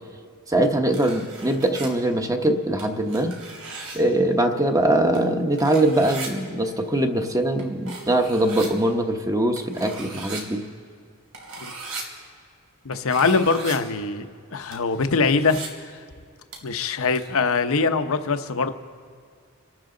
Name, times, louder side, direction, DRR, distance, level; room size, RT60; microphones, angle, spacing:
voice 1, 0.5-3.3 3.9-10.6, right 1 dB, 15° right, 5 dB, 0.9 m, -22 dB
sound 1, 0.9-1.9 2.8-4.0 5.1-5.2 5.5-6.3 7.6-7.7 7.9-8.7 9.6-10.4 11.3-12.0 12.9-13.8 14.7-15.7 16.5-16.8 17.1-17.3, right 3 dB, 85° right, 3.2 m, -37 dB
voice 2, 12.8-15.9 16.6-18.7, left 4 dB, 65° left, 9 dB, 0.8 m, -23 dB
27.0 x 12.5 x 3.9 m, 2.3 s
head